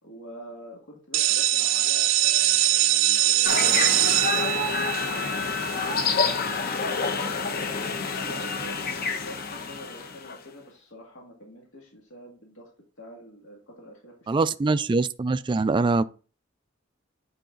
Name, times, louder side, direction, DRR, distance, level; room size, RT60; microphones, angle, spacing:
voice 1, 0.0-7.3 8.2-12.7 13.0-14.8, equal, 75° left, 2.1 m, -45 dB
sound 1, 1.1-6.8, right 13 dB, 85° right, 0.6 m, -23 dB
sound 2, 3.4-10.4, left 5 dB, 50° left, 1.0 m, -28 dB
voice 2, 14.3-16.0, right 3 dB, 25° right, 0.3 m, -23 dB
9.2 x 4.1 x 3.8 m
head